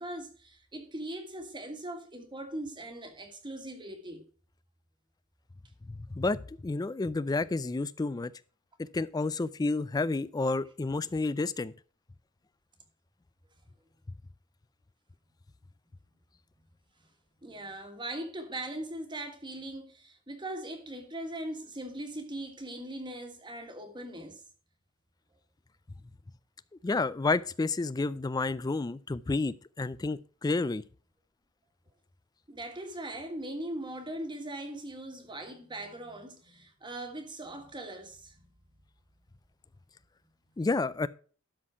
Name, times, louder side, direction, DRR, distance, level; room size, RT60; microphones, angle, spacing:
voice 1, 0.0-4.2 17.4-24.4 32.5-38.5, right 1 dB, 20° right, 1.5 m, -40 dB
voice 2, 5.9-8.3 8.8-11.7 26.8-30.8 40.6-41.1, left 3 dB, 15° left, 0.3 m, -30 dB
12.5 x 4.2 x 5.6 m
head